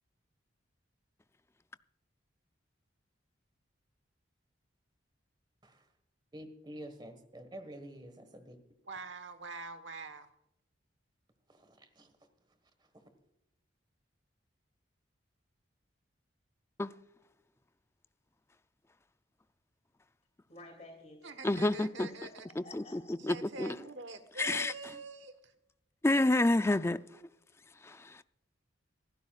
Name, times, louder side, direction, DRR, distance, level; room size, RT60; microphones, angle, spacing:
voice 1, 6.3-8.6 11.5-12.1, right 1 dB, 20° right, 1.5 m, -48 dB
voice 2, 8.8-10.3 21.2-22.5 23.3-25.5, right 3 dB, 70° right, 1.3 m, -45 dB
voice 3, 20.5-21.4 21.9-23.1 23.5-23.6, left 2 dB, 35° left, 2.7 m, -53 dB
voice 4, 21.4-22.1 22.6-22.8 23.3-23.8 24.4-24.7 26.0-27.0 27.8-28.2, left 2 dB, 15° left, 0.3 m, -28 dB
25.0 x 12.5 x 2.4 m
head